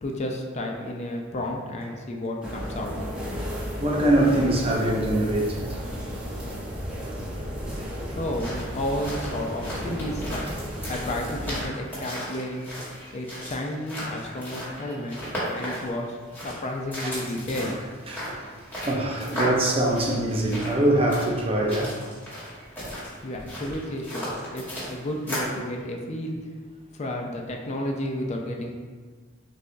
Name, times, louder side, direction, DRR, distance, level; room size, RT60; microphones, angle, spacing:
voice 1, 0.0-2.9 3.3-3.4 7.9-12.7 13.1-16.2 16.4-17.8 23.2-26.4 26.9-28.7, left 1 dB, 35° left, 1 dB, 0.4 m, -32 dB
sound 1, 2.4-11.7, equal, 5° right, 0.8 m, -34 dB
voice 2, 3.8-5.8 7.7-7.8 17.0-17.2 18.1-18.3 18.8-22.0, right 1 dB, 30° right, 0 dB, 0.5 m, -23 dB
sound 2, 8.3-25.6, equal, 10° left, 1.5 m, -35 dB
6.5 x 2.2 x 2.6 m, 1.5 s
head